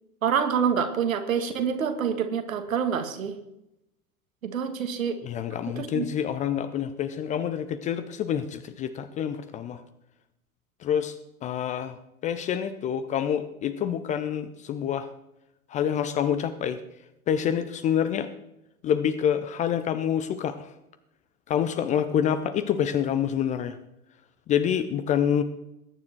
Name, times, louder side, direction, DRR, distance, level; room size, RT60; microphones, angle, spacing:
voice 1, 0.2-3.3 4.4-5.2 5.8-6.1, right 7 dB, 65° right, 7 dB, 2.0 m, -26 dB
voice 2, 5.2-9.8 10.8-11.2 11.4-12.0 12.2-15.1 15.7-16.8 17.3-18.3 18.8-20.7 21.5-23.8 24.5-25.4, left 9 dB, 15° left, 11 dB, 0.5 m, -27 dB
20.5 x 9.6 x 4.5 m, 0.87 s
figure-of-eight pair, 95°, 44 cm